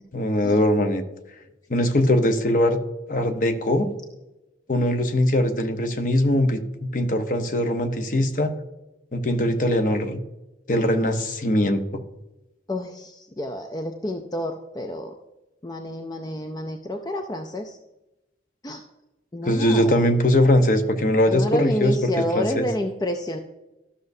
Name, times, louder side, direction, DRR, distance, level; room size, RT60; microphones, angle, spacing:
voice 1, 0.1-1.0 1.7-2.8 3.1-3.9 4.7-8.5 9.1-10.2 10.7-11.8 19.5-22.1 22.3-22.7, left 1 dB, 45° left, 7 dB, 0.8 m, -21 dB
voice 2, 12.7-15.1 15.6-17.8 18.6-18.8 19.3-20.0 21.3-23.4, left 1 dB, 20° left, 5 dB, 0.4 m, -29 dB
13.0 x 6.5 x 2.6 m, 0.96 s
head